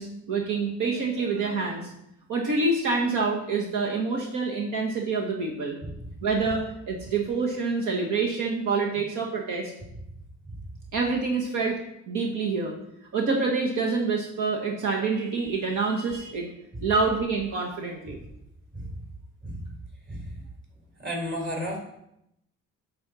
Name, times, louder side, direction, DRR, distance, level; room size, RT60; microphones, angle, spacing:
voice 1, 0.0-1.9 2.3-5.8 6.2-9.7 10.9-11.8 12.1-12.7 13.1-16.5 16.8-18.2, right 4 dB, 80° right, 0 dB, 1.5 m, -27 dB
voice 2, 21.0-21.8, equal, 40° right, 0 dB, 3.9 m, -32 dB
8.7 x 4.4 x 6.9 m, 0.80 s
cardioid pair, 90°, 30 cm